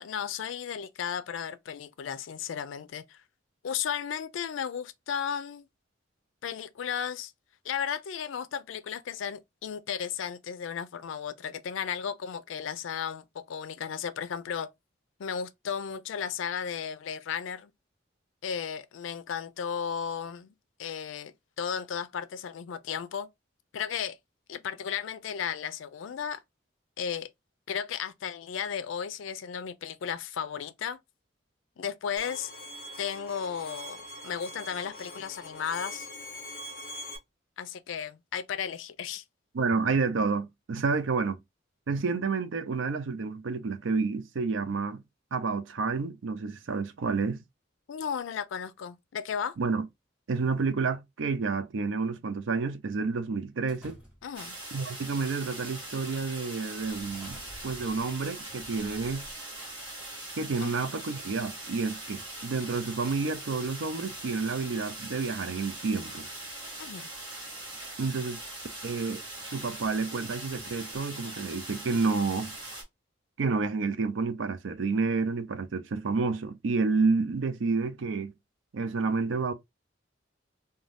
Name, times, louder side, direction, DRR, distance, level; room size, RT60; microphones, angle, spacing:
voice 1, 0.0-3.2 3.6-5.6 6.4-7.3 7.6-14.7 15.2-17.7 18.4-20.5 20.8-23.3 23.7-24.2 24.5-26.4 27.0-27.3 27.7-31.0 31.8-32.5 33.0-36.1 37.6-39.2 47.9-49.6 54.2-54.6 60.6-60.8 66.8-67.1, left 7 dB, 90° left, 0.4 m, -34 dB
Bowed string instrument, 32.2-37.2, left 1 dB, 55° left, 0.7 m, -43 dB
voice 2, 39.5-41.4 41.9-45.0 45.3-47.4 49.6-49.9 50.3-54.0 54.7-59.3 60.4-66.3 68.0-68.4 68.8-69.2 69.5-72.5 73.4-78.3 78.7-79.5, right 4 dB, 85° right, 0.5 m, -29 dB
sound 1, 53.7-54.5 55.3-55.6 56.0-56.2 56.8-59.7, equal, 5° right, 1.1 m, -52 dB
sound 2, 54.3-72.8, right 2 dB, 25° right, 1.2 m, -41 dB
2.6 x 2.2 x 3.3 m
head